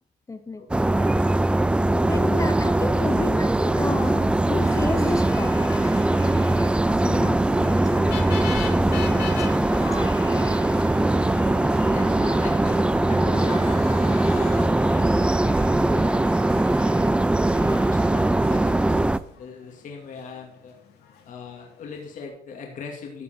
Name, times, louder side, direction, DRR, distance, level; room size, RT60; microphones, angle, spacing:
voice 1, 0.3-0.9 2.1-6.0 6.6-10.1, left 3 dB, 20° left, 8 dB, 0.9 m, -32 dB
sound 1, 0.7-19.2, right 2 dB, 5° right, 0.3 m, -21 dB
sound 2, 1.3-19.2, right 4 dB, 35° right, 2.6 m, -45 dB
voice 2, 1.9-2.4 11.2-20.7 21.3-23.2, left 5 dB, 50° left, 1 dB, 2.3 m, -41 dB
sound 3, 4.4-22.3, left 5 dB, 75° left, 2.5 m, -41 dB
13.0 x 7.0 x 4.4 m, 0.73 s
cardioid pair, 110°, 17 cm